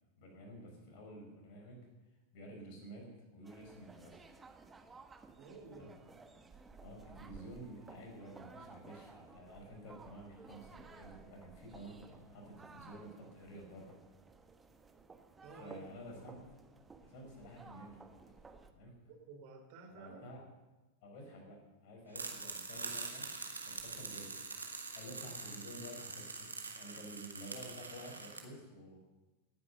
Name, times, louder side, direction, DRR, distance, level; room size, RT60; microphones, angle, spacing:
voice 1, 0.1-1.9 2.3-4.2 5.7-5.9 6.8-14.0 15.6-16.4 17.0-18.0 18.7-19.0 20.0-20.5 21.0-23.3 23.6-24.3 24.9-29.0, equal, 45° left, 2 dB, 5.0 m, -51 dB
sound 1, 3.4-18.7, right 4 dB, 15° right, 1.3 m, -57 dB
voice 2, 5.4-5.9 15.4-16.2 19.0-20.3, right 4 dB, 45° right, 3 dB, 3.1 m, -53 dB
sound 2, 22.1-28.4, right 4 dB, 80° right, 1.9 m, -44 dB
18.5 x 9.8 x 6.7 m, 1.1 s
figure-of-eight pair, 90°, 0 cm